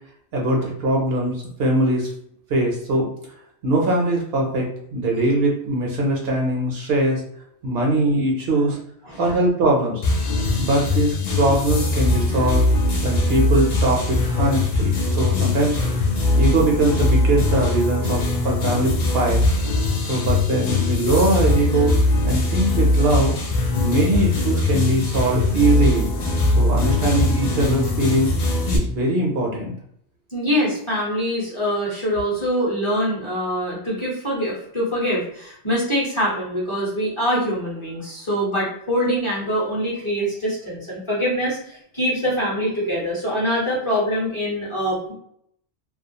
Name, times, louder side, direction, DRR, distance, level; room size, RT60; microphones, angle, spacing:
voice 1, 0.3-2.1 2.5-3.1 3.6-7.2 7.6-8.8 9.2-10.0 10.6-12.6 13.0-15.8 16.4-19.4 20.1-21.9 22.2-23.3 23.7-26.1 26.6-28.3 28.7-29.7, right 1 dB, 65° right, -1 dB, 0.7 m, -21 dB
sound 1, 10.0-28.8, left 2 dB, 60° left, 0.4 m, -21 dB
voice 2, 30.3-45.1, equal, 30° left, -6 dB, 0.7 m, -24 dB
2.3 x 2.2 x 2.7 m, 0.69 s
omnidirectional pair, 1.2 m